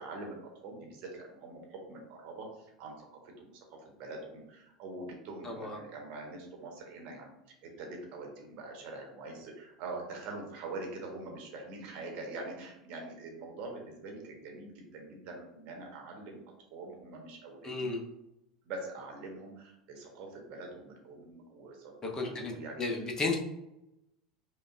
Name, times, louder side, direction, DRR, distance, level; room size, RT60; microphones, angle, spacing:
voice 1, 0.0-3.1 3.4-16.4 16.7-17.9 18.6-23.0, right 2 dB, 45° right, 1 dB, 0.9 m, -44 dB
voice 2, 5.4-5.8 17.6-18.0 22.0-22.5 22.8-23.3, left 3 dB, 20° left, 1 dB, 0.8 m, -33 dB
4.9 x 2.2 x 2.5 m, 0.89 s
figure-of-eight pair, 80°, 3 cm